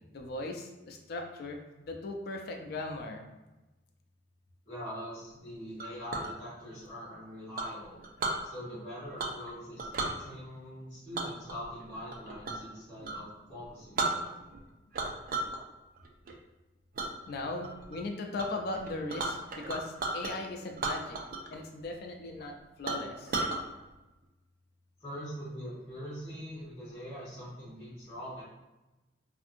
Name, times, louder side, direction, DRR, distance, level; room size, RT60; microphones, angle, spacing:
voice 1, 0.1-1.6 1.9-3.2 17.3-21.2 21.5-23.3, left 2 dB, 55° left, 3 dB, 0.4 m, -38 dB
voice 2, 4.7-8.0 8.4-14.3 25.0-28.4, equal, 20° left, -12 dB, 1.1 m, -43 dB
Chink clink, 5.8-6.3 7.6-8.4 9.2-9.5 9.8-10.2 11.1-12.7 13.0-13.2 13.6-13.7 14.0-14.6 14.9-15.6 16.0-16.3 17.0-17.1 17.6-18.0 18.4-18.5 18.7-20.3 20.7-21.6 21.8-21.9 22.4-22.5 22.9-23.6, right 3 dB, 50° right, 0.3 m, -34 dB
2.6 x 2.5 x 2.5 m, 1.0 s
head